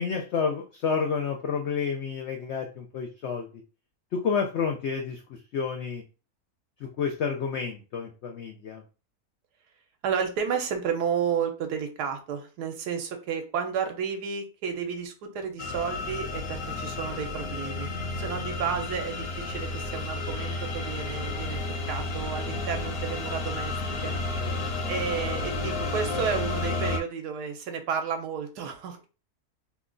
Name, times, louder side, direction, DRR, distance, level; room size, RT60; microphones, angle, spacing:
voice 1, 0.0-3.5 4.1-6.0 6.8-8.8 24.4-24.8, left 6 dB, 90° left, 3 dB, 0.6 m, -30 dB
voice 2, 10.0-21.6 21.9-23.7 24.0-24.1 24.9-29.1, right 7 dB, 85° right, 4 dB, 1.2 m, -32 dB
sound 1, 15.6-27.0, left 3 dB, 65° left, 0.8 m, -32 dB
3.0 x 2.2 x 3.7 m, 0.33 s
omnidirectional pair, 1.7 m